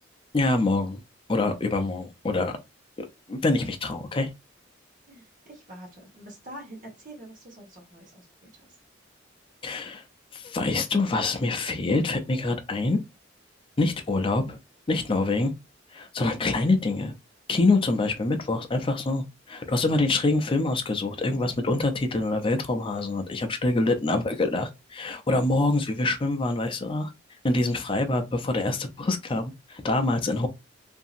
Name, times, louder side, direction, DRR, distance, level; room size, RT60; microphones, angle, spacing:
voice 1, 0.3-1.0 1.3-2.6 3.3-4.3 9.6-10.0 10.3-13.0 13.8-14.6 14.9-15.5 15.9-17.1 17.5-27.1 27.4-30.5, left 2 dB, 30° left, 0.5 m, -25 dB
voice 2, 5.1-8.7, right 1 dB, 45° right, 1.3 m, -46 dB
2.8 x 2.6 x 2.4 m
head